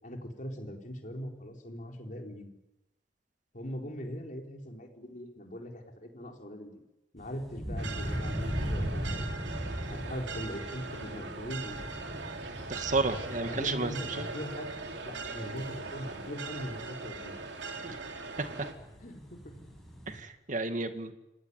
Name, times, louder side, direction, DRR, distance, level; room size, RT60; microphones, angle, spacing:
voice 1, 0.0-2.5 3.5-6.7 7.1-9.3 9.9-11.9 13.4-14.8 15.0-17.4 19.0-19.6 20.8-21.1, equal, 45° left, 2 dB, 4.3 m, -41 dB
sound 1, 7.2-20.2, equal, ahead, 8.0 m, -39 dB
sound 2, 7.8-18.7, right 3 dB, 80° right, 3.2 m, -41 dB
voice 2, 12.7-13.9 14.2-14.3 17.8-18.0 20.2-21.1, right 3 dB, 45° right, 8 dB, 2.1 m, -31 dB
28.0 x 17.0 x 9.7 m, 0.95 s
head